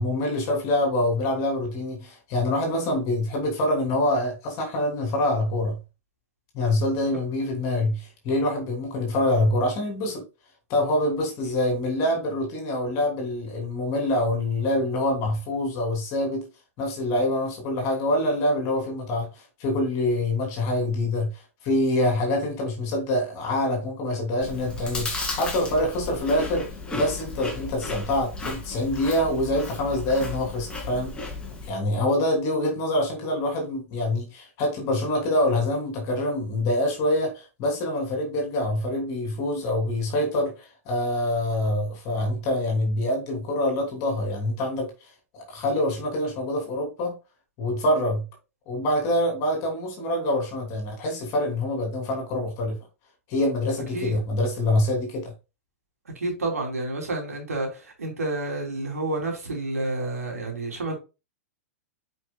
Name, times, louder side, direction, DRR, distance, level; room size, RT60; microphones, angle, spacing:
voice 1, 0.0-5.8 6.5-10.2 10.7-16.4 16.8-21.3 21.6-26.7 26.9-31.3 31.6-44.9 45.3-47.2 47.6-48.2 48.7-52.8 53.3-55.3, left 1 dB, 40° left, 2.8 m, -25 dB
Chewing mastication, 24.4-31.7, left 2 dB, 10° left, 2.3 m, -34 dB
voice 2, 56.1-61.0, right 2 dB, 80° right, 3.0 m, -29 dB
8.9 x 5.1 x 2.2 m
hypercardioid pair, 105°, 8 cm